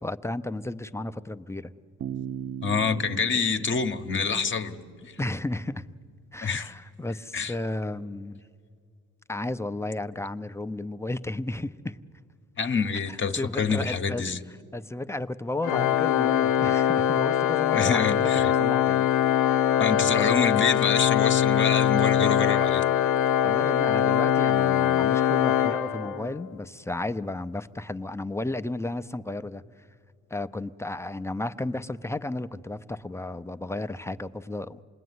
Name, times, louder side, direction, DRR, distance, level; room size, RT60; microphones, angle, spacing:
voice 1, 0.0-1.7 5.2-5.8 6.3-8.4 9.3-12.0 13.1-14.2 14.7-19.1 23.4-29.6 30.3-34.8, left 2 dB, 10° left, 0.6 m, -33 dB
Bass guitar, 2.0-5.7, right 8 dB, 45° right, 0.8 m, -39 dB
voice 2, 2.6-4.8 5.1-5.2 6.4-6.7 7.3-7.5 12.6-14.4 17.7-18.5 19.8-22.8, left 5 dB, 40° left, 1.1 m, -26 dB
Organ, 15.6-26.4, left 10 dB, 85° left, 0.7 m, -23 dB
28.0 x 20.0 x 9.5 m
cardioid pair, 90°, 30 cm